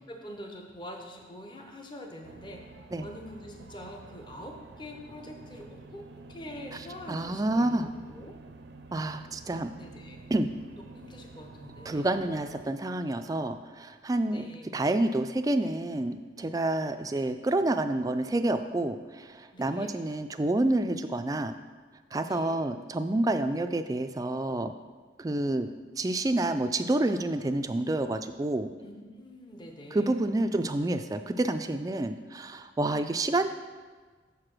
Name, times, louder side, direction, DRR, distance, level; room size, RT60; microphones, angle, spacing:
voice 1, 0.1-2.6 3.0-8.3 9.8-10.3 10.9-12.1 14.3-14.7 19.5-19.9 22.2-22.6 28.8-30.2, left 1 dB, 25° left, 2 dB, 0.7 m, -45 dB
sound 1, 2.2-12.7, right 3 dB, 75° right, 0.5 m, -49 dB
voice 2, 7.1-7.9 8.9-9.7 10.3-10.5 11.9-14.5 14.7-21.5 22.1-24.7 25.2-25.7 26.0-28.7 29.9-33.5, right 2 dB, 20° right, 8 dB, 0.3 m, -28 dB
6.8 x 4.9 x 6.0 m, 1.4 s
head